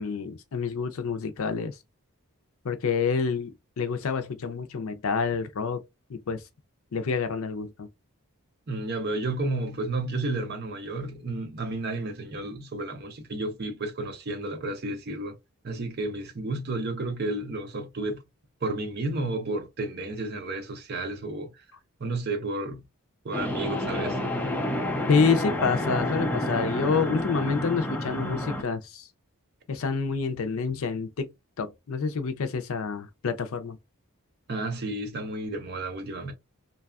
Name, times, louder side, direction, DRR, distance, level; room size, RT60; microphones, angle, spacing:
voice 1, 0.0-1.7 2.6-5.8 6.1-6.4 6.9-7.9 25.1-29.1 29.7-31.3 31.6-33.8, left 5 dB, 70° left, 0.5 m, -28 dB
voice 2, 8.7-15.4 15.6-18.2 18.6-21.6 22.0-22.8 23.2-24.2 34.5-36.3, right 2 dB, 45° right, 0.6 m, -32 dB
sound 1, 23.3-28.6, left 1 dB, 10° left, 0.3 m, -29 dB
2.6 x 2.2 x 2.3 m
head